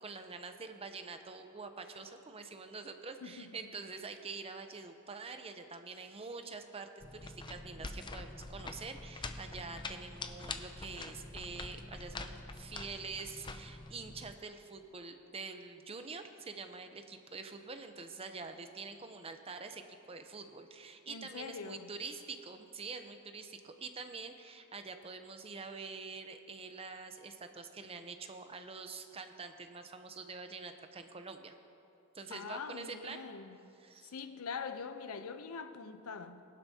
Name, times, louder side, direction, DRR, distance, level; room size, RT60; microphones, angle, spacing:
voice 1, 0.0-31.5 32.1-33.2 33.8-34.1, right 4 dB, 25° right, 0.7 m, -46 dB
voice 2, 3.2-3.5 21.1-21.9 32.3-33.6 34.0-36.4, left 5 dB, 80° left, 0.6 m, -43 dB
sound 1, 7.0-14.3, left 3 dB, 20° left, 0.5 m, -45 dB
19.5 x 11.5 x 2.8 m
head